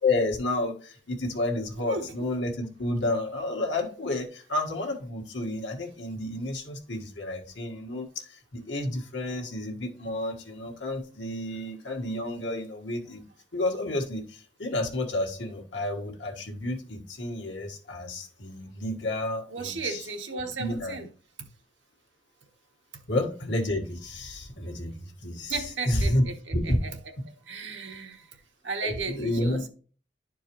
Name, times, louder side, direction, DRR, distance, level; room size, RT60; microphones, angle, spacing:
voice 1, 0.0-13.2 13.5-20.1 20.3-21.0 23.1-26.2 26.5-26.8 28.8-29.6, left 1 dB, 80° left, 1.5 m, -30 dB
voice 2, 19.5-21.1 25.5-26.3 26.6-26.9 27.5-28.3 28.6-29.7, right 4 dB, 90° right, 1.2 m, -34 dB
11.0 x 4.6 x 3.0 m
head